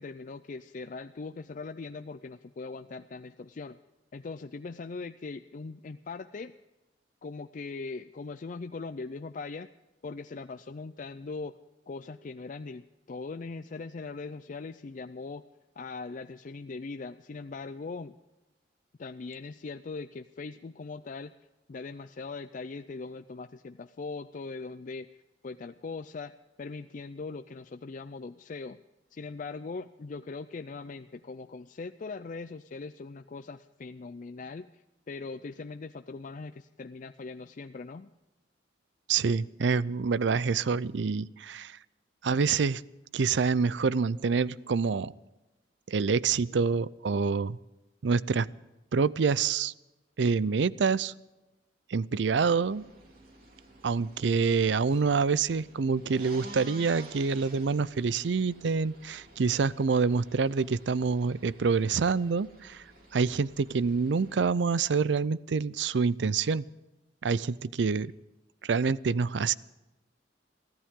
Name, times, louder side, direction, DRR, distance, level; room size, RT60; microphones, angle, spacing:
voice 1, 0.0-3.8 4.1-6.5 7.2-9.7 10.0-11.6 11.9-15.4 15.8-18.2 19.0-21.3 21.7-25.1 25.4-26.3 26.6-28.8 29.1-38.1, left 4 dB, 45° left, 10 dB, 0.4 m, -40 dB
voice 2, 39.1-41.8 42.2-42.8 43.1-45.1 45.9-47.6 48.0-48.5 48.9-49.7 50.2-51.1 51.9-52.9 53.8-62.8 63.1-66.6 67.2-68.1 68.6-69.5, right 5 dB, 75° right, 20 dB, 0.5 m, -27 dB
sound 1, 52.1-64.4, right 2 dB, 50° right, 3.6 m, -52 dB
24.0 x 15.5 x 3.7 m, 1.0 s
head